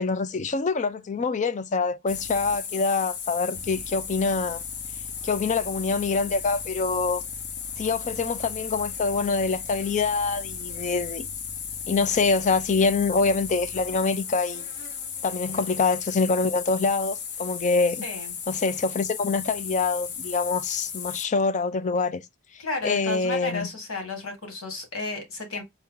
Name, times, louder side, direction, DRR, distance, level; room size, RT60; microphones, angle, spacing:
voice 1, 0.0-4.6 5.2-7.2 7.8-11.3 11.9-14.7 15.2-18.0 18.5-22.2 22.8-23.7, left 4 dB, 35° left, 0.4 m, -25 dB
sound 1, 2.1-21.3, left 7 dB, 50° left, 0.8 m, -35 dB
voice 2, 18.0-18.3 22.6-25.6, left 3 dB, 75° left, 1.9 m, -32 dB
4.5 x 2.7 x 3.7 m
head